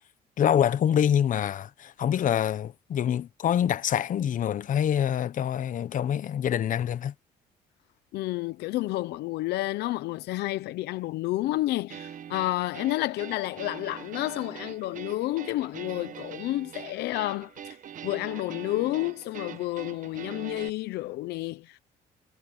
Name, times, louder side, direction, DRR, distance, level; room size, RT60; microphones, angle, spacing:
voice 1, 0.4-7.1, left 9 dB, 50° left, 1.2 m, -25 dB
voice 2, 8.1-17.5 18.0-21.8, left 17 dB, 80° left, 0.8 m, -30 dB
sound 1, 11.9-20.7, right 9 dB, 50° right, 1.4 m, -43 dB
cardioid pair, 110°, 17 cm